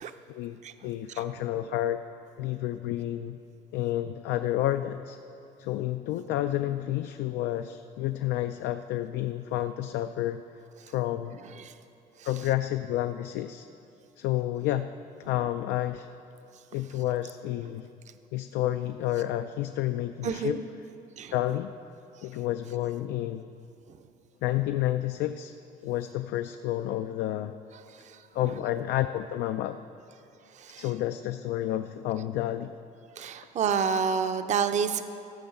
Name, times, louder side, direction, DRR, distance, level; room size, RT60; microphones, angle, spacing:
voice 1, 0.3-2.0 2.4-3.4 3.7-5.2 5.6-10.4 10.9-11.4 12.3-13.7 14.2-14.9 15.2-16.1 16.7-17.9 18.3-20.6 21.3-21.7 22.2-23.5 24.4-25.5 25.8-27.5 28.3-29.8 30.8-32.7, left 13 dB, 85° left, 9 dB, 0.4 m, -30 dB
voice 2, 20.2-20.6 21.2-21.3 28.1-28.2 30.6-30.8 33.2-35.0, right 6 dB, 45° right, 9 dB, 0.6 m, -28 dB
14.0 x 5.5 x 7.1 m, 2.6 s
cardioid pair, 110°, 17 cm